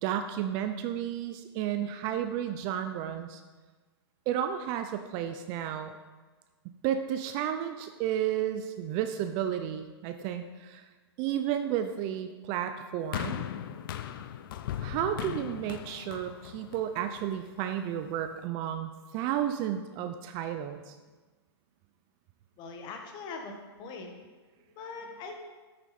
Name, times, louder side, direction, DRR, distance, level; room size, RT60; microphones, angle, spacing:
voice 1, 0.0-3.4 4.3-6.0 6.8-10.8 11.2-13.5 14.8-20.9, right 10 dB, 30° right, 8 dB, 0.5 m, -32 dB
sound 1, 13.1-17.5 18.3-18.4, left 10 dB, 50° left, 0.5 m, -38 dB
voice 2, 22.6-24.1 24.8-25.4, left 4 dB, 30° left, 3 dB, 1.4 m, -41 dB
8.3 x 7.0 x 4.3 m, 1.3 s
hypercardioid pair, 130°, 14 cm